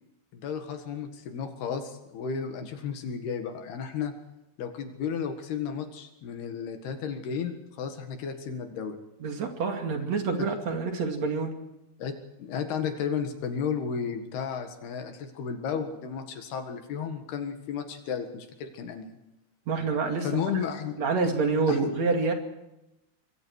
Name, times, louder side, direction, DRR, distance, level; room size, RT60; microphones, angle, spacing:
voice 1, 0.3-4.2 4.6-9.0 10.4-10.5 12.0-12.1 12.4-19.1 20.2-21.0 21.7-21.9, left 6 dB, 65° left, 6 dB, 3.4 m, -33 dB
voice 2, 9.2-11.6 19.7-20.4 21.0-22.3, right 4 dB, 45° right, 4 dB, 2.8 m, -27 dB
26.0 x 22.5 x 4.7 m, 0.93 s
omnidirectional pair, 5.5 m